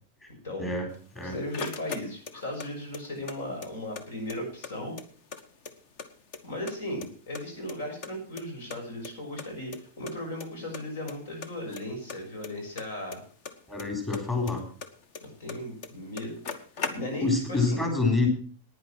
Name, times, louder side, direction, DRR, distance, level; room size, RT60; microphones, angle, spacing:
voice 1, 0.6-0.9 1.2-1.3 13.7-14.6 17.2-18.3, left 3 dB, 20° left, 1 dB, 3.8 m, -26 dB
sound 1, 0.9-2.7 2.9-4.0 4.3-4.4 4.6-6.1 6.3-7.1 7.3-8.8 9.0-9.1 9.4-9.5 9.7-9.8 10.1-10.5 10.7-11.1 11.4-13.9 14.1-15.6 15.8-15.9 16.1-17.4, left 5 dB, 50° left, 1.5 m, -38 dB
voice 2, 1.2-5.0 6.4-13.2 15.2-16.3 16.8-17.8, left 1 dB, 75° left, 3 dB, 6.6 m, -36 dB
10.5 x 9.8 x 6.1 m, 0.43 s
supercardioid pair, 145°, 0 cm